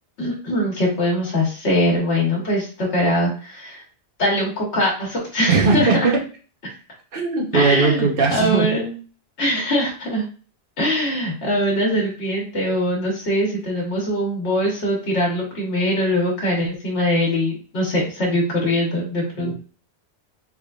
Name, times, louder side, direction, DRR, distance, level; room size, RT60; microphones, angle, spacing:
voice 1, 0.2-3.8 4.2-6.1 7.5-8.9 9.4-10.3 10.8-19.5, equal, 70° left, -3 dB, 1.4 m, -22 dB
voice 2, 5.5-6.2 7.1-8.7 19.4-19.5, right 4 dB, 55° right, 0 dB, 1.1 m, -19 dB
3.6 x 3.4 x 2.3 m, 0.38 s
omnidirectional pair, 1.1 m